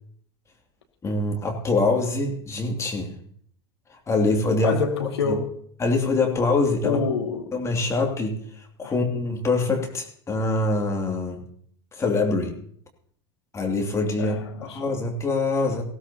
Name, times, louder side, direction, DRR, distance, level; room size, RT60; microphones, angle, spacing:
voice 1, 1.0-3.1 3.9-4.8 5.3-5.4 5.8-7.0 7.5-11.4 11.9-12.5 13.5-15.8, left 3 dB, 20° left, 2 dB, 2.7 m, -24 dB
voice 2, 4.6-5.5 6.8-7.5 8.8-8.9 14.2-14.8, left 5 dB, 75° left, 3 dB, 2.2 m, -26 dB
20.0 x 16.0 x 2.9 m, 0.62 s
figure-of-eight pair, 80°, 14 cm